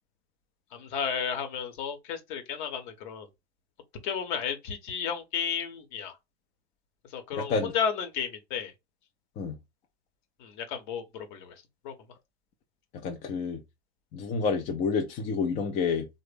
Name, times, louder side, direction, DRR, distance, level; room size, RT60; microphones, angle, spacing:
voice 1, 0.7-3.3 4.0-6.2 7.1-8.7 10.4-11.5 11.8-11.9, left 7 dB, 50° left, 0.9 m, -33 dB
voice 2, 7.4-7.7 9.4-9.6 12.9-13.6 14.1-16.1, left 5 dB, 20° left, 0.4 m, -29 dB
3.2 x 2.1 x 3.4 m
figure-of-eight pair, 90°, 32 cm